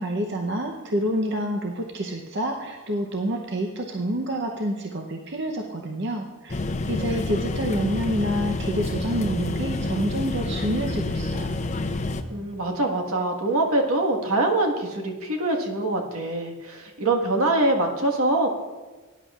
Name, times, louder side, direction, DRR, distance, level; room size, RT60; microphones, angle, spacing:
voice 1, 0.0-6.6 6.9-11.5, right 1 dB, 50° right, 1 dB, 0.8 m, -28 dB
sound 1, 6.5-12.2, left 2 dB, 30° left, 0.5 m, -28 dB
voice 2, 12.3-18.5, right 2 dB, 80° right, 1 dB, 1.5 m, -24 dB
18.5 x 10.0 x 2.4 m, 1.2 s
head